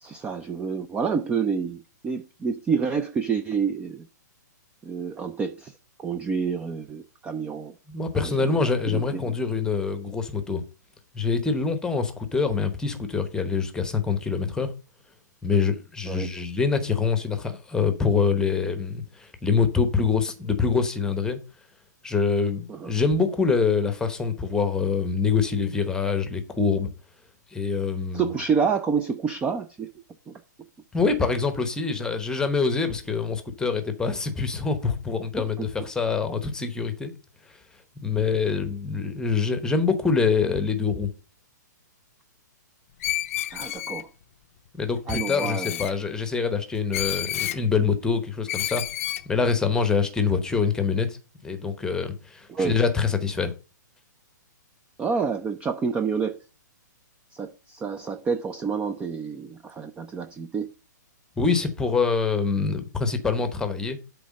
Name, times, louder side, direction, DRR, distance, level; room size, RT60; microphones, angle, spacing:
voice 1, 0.0-4.1 4.8-5.7 6.0-7.7 8.1-9.4 16.1-16.3 22.7-22.9 28.1-29.9 30.3-30.4 35.4-35.7 43.5-44.1 45.1-45.8 52.5-52.8 55.0-56.4 57.3-60.7, right 5 dB, 10° right, 0.4 m, -28 dB
voice 2, 7.9-10.6 11.1-14.7 15.4-21.4 22.0-26.9 27.5-28.3 30.9-37.1 38.0-41.1 44.7-48.8 49.3-51.2 51.4-53.5 61.4-64.0, left 5 dB, 5° left, 0.9 m, -25 dB
Screech, 43.0-44.0 45.1-45.9 46.9-47.6 48.5-49.2, left 13 dB, 45° left, 0.5 m, -30 dB
7.8 x 3.4 x 6.3 m
hypercardioid pair, 135°, 10 cm